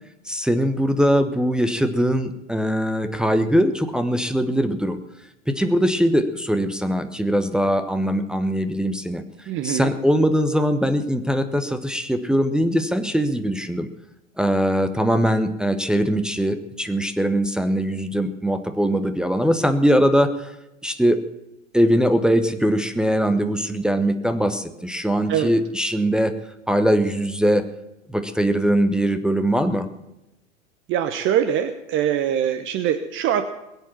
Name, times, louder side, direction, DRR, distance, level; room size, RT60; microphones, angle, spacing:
voice 1, 0.3-5.0 5.5-13.9 14.4-20.5 20.8-21.2 21.7-26.3 26.7-27.6 28.1-29.9, equal, ahead, 7 dB, 1.0 m, -21 dB
voice 2, 9.5-9.9 25.3-25.5 30.9-33.4, right 9 dB, 35° right, 9 dB, 1.2 m, -23 dB
21.5 x 8.2 x 7.2 m, 0.91 s
figure-of-eight pair, 95°, 36 cm